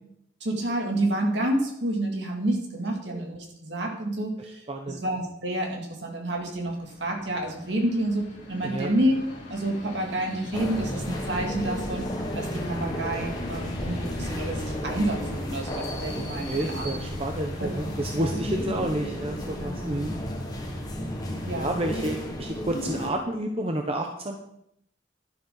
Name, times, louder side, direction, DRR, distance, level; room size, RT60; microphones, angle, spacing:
voice 1, 0.4-9.2 9.5-12.1 12.3-16.9 17.6-17.7 18.2-18.3 21.5-21.8, right 1 dB, 65° right, 1 dB, 2.6 m, -29 dB
voice 2, 4.7-5.0 8.6-8.9 16.1-20.2 21.5-24.4, right 1 dB, 30° right, 3 dB, 0.9 m, -30 dB
sound 1, 6.4-22.2, left 1 dB, 40° left, 3.5 m, -41 dB
sound 2, 10.5-23.1, equal, 20° left, 1.7 m, -33 dB
11.5 x 11.0 x 4.0 m, 0.75 s
head